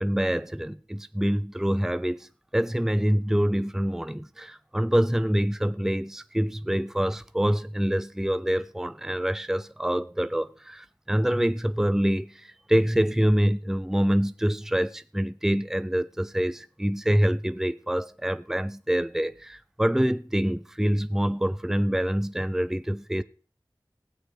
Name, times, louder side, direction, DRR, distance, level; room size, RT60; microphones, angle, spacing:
voice 1, 0.0-23.2, equal, 5° right, 0.5 m, -26 dB
16.0 x 8.7 x 4.8 m
wide cardioid pair, 45°, 8 cm